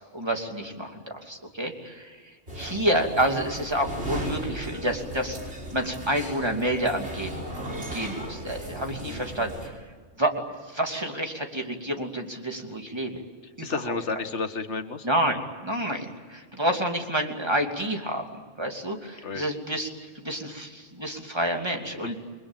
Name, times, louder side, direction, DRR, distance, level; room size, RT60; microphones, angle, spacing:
voice 1, 0.1-2.2 2.5-5.4 5.7-7.4 7.9-9.7 10.2-13.2 13.6-13.8 15.0-19.9 20.1-22.2, right 1 dB, 25° right, 2 dB, 3.0 m, -29 dB
sound 1, 2.5-9.7, right 1 dB, 70° right, 5.6 m, -36 dB
voice 2, 13.6-15.1 19.2-19.4 21.9-22.2, left 4 dB, 90° left, 9 dB, 1.8 m, -32 dB
29.5 x 22.5 x 9.1 m, 1.5 s
omnidirectional pair, 1.2 m